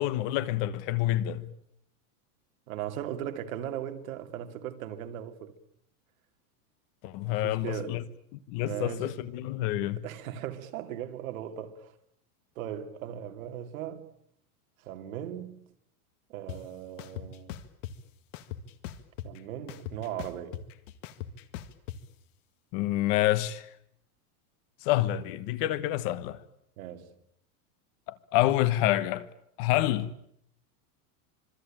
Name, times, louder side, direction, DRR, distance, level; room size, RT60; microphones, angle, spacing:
voice 1, 0.0-1.5 7.0-8.0 8.5-10.0 22.7-23.7 24.8-26.4 28.1-29.3 29.6-30.1, left 14 dB, 40° left, 1.2 m, -27 dB
voice 2, 2.7-5.5 7.3-8.0 8.6-9.1 10.0-11.9 12.6-14.0 14.8-15.6 16.3-17.6 19.2-20.6 26.8-27.1, right 10 dB, 65° right, 2.9 m, -38 dB
sound 1, 16.5-16.6 17.0-17.9 18.3-19.4 19.7-22.0, left 12 dB, 55° left, 2.0 m, -39 dB
26.5 x 23.5 x 8.9 m
supercardioid pair, 170°, 44 cm